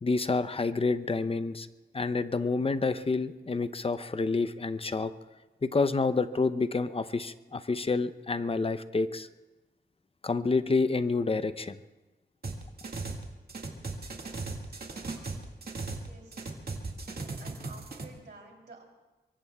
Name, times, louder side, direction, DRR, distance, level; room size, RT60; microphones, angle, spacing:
voice 1, 0.0-1.7 1.9-5.1 5.6-9.3 10.2-11.8, left 3 dB, 35° left, 12 dB, 0.6 m, -28 dB
sound 1, 12.4-13.2 13.5-16.1 16.3-18.0, right 3 dB, 65° right, 2.0 m, -37 dB
voice 2, 15.8-16.5 17.4-18.8, right 2 dB, 85° right, 0 dB, 3.3 m, -52 dB
24.5 x 23.5 x 2.3 m, 1.2 s
wide cardioid pair, 105°, 17 cm